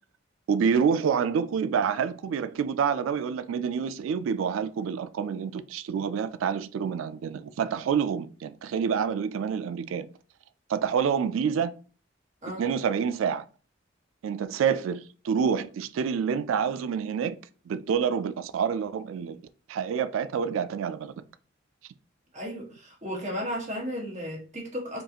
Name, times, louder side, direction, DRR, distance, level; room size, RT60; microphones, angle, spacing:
voice 1, 0.5-10.1 10.7-11.7 12.6-13.4 14.2-17.4 17.7-19.4 19.7-21.2, right 7 dB, 85° right, 0.3 m, -27 dB
voice 2, 22.3-25.0, equal, 40° right, 1.4 m, -34 dB
5.2 x 2.4 x 2.8 m
head